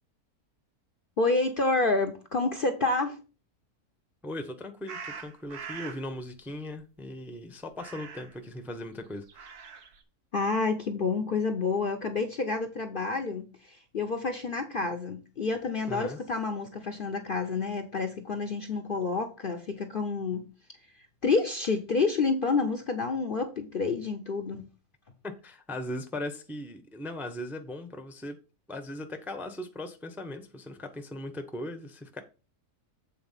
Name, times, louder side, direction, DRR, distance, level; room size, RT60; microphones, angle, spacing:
voice 1, 1.2-3.2 10.3-20.5 21.2-24.7, left 3 dB, 45° left, 0.8 m, -29 dB
voice 2, 4.2-9.6 15.9-16.2 25.2-28.4 28.7-32.2, left 1 dB, ahead, 0.7 m, -38 dB
sound 1, 4.9-6.0 7.7-8.4 9.2-10.0, right 6 dB, 85° right, 1.6 m, -42 dB
7.8 x 4.2 x 5.6 m
omnidirectional pair, 1.6 m